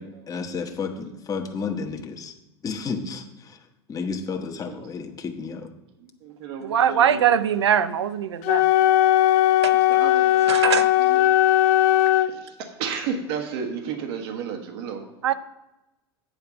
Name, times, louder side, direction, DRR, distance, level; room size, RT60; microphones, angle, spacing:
voice 1, 0.0-2.3 2.6-5.7 7.1-7.2 7.8-8.1, left 5 dB, 25° left, 4 dB, 1.2 m, -32 dB
voice 2, 6.0-7.5 9.0-9.1 9.7-11.4 12.1-15.1, right 6 dB, 65° right, 5 dB, 1.5 m, -34 dB
voice 3, 6.6-8.7 9.6-9.8 10.5-10.9 15.2-15.3, right 9 dB, 90° right, 14 dB, 0.6 m, -22 dB
Wind instrument woodwind instrument, 8.4-12.3, left 13 dB, 55° left, 0.6 m, -18 dB
8.9 x 4.6 x 7.1 m, 0.96 s
hypercardioid pair, 100°, 14 cm